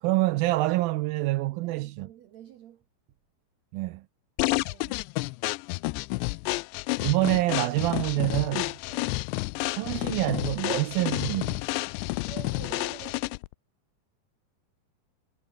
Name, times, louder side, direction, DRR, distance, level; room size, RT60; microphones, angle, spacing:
voice 1, 0.0-2.1 3.7-4.0 7.0-8.7 9.7-11.6, right 18 dB, 85° right, 2.1 m, -26 dB
voice 2, 1.6-2.8 4.6-5.1 8.9-9.2 12.3-13.3, right 11 dB, 70° right, 1.7 m, -47 dB
sound 1, 4.4-13.5, left 24 dB, 90° left, 2.8 m, -30 dB
omnidirectional pair, 4.9 m